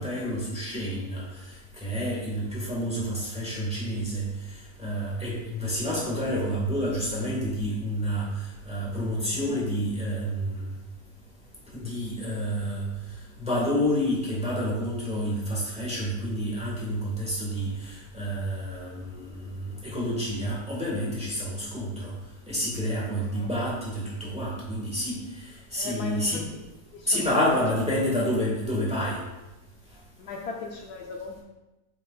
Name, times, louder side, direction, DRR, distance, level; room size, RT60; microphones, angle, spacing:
voice 1, 0.0-4.3 4.8-10.7 11.7-12.9 13.4-22.1 22.5-26.4 27.1-29.2, equal, 5° right, -5 dB, 1.5 m, -29 dB
voice 2, 9.2-9.6 21.6-21.7 23.3-23.5 25.7-26.5 26.9-27.3 30.2-31.4, left 3 dB, 70° left, 1 dB, 1.2 m, -38 dB
7.2 x 5.8 x 2.4 m, 1.0 s
omnidirectional pair, 1.8 m